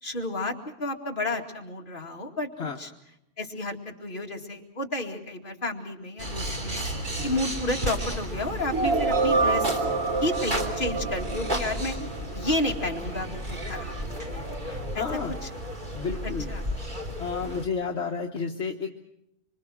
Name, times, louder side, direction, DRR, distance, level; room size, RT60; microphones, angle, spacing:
voice 1, 0.0-2.9 3.4-6.8 7.2-9.7 10.2-11.9 12.3-14.4 14.9-15.0 15.4-15.5 16.1-16.6, left 1 dB, 45° left, 1 dB, 2.5 m, -31 dB
sound 1, 6.2-17.7, equal, 40° right, 3.1 m, -33 dB
sound 2, 8.7-12.6, right 3 dB, 60° right, 1.4 m, -27 dB
voice 2, 14.6-15.3 15.9-16.5 17.2-19.0, left 5 dB, 65° left, 2 dB, 1.5 m, -31 dB
26.0 x 25.0 x 6.1 m, 0.81 s
omnidirectional pair, 1.2 m